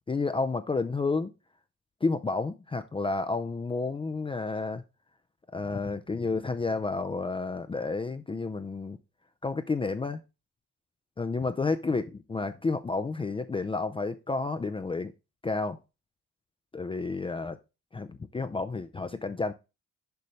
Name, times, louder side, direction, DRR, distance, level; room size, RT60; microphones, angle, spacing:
voice 1, 0.1-1.3 2.0-4.8 5.5-9.0 9.4-10.2 11.2-15.1 15.4-15.8 16.7-17.6 17.9-19.5, left 3 dB, 20° left, 0.5 m, -30 dB
6.8 x 5.3 x 3.1 m
cardioid pair, 90°, 30 cm